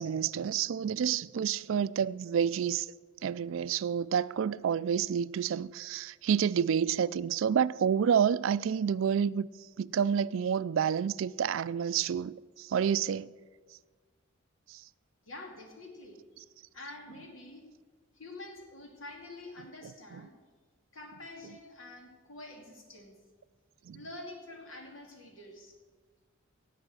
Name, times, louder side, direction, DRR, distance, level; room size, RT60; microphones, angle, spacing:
voice 1, 0.0-2.9 3.2-9.5 9.8-13.3 14.7-14.8 23.9-24.0, right 7 dB, 70° right, 0.3 m, -29 dB
voice 2, 15.2-16.2 16.7-17.7 18.1-20.3 20.9-23.1 23.9-25.7, left 2 dB, 75° left, 2.6 m, -47 dB
17.5 x 7.6 x 6.3 m
head